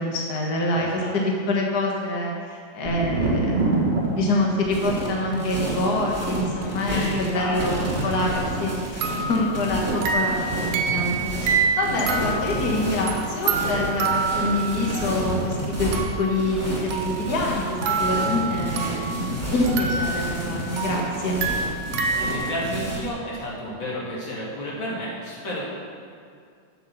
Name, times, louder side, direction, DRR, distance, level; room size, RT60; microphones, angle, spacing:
voice 1, 0.0-7.7 8.0-8.3 8.6-15.9 16.2-21.4, left 2 dB, 70° left, -1 dB, 0.9 m, -26 dB
voice 2, 0.7-1.1 6.8-8.5 22.2-25.6, equal, 35° left, -6 dB, 3.0 m, -32 dB
Thunder, 2.8-12.5 12.7-13.5, right 3 dB, 45° right, 0.8 m, -31 dB
sound 1, 4.6-23.1, right 1 dB, 5° right, 1.6 m, -30 dB
sound 2, 8.3-8.5 9.0-15.5 15.9-16.4 16.9-19.2 19.7-22.3, right 5 dB, 85° right, 2.7 m, -27 dB
9.3 x 8.3 x 6.9 m, 2.3 s
omnidirectional pair, 4.1 m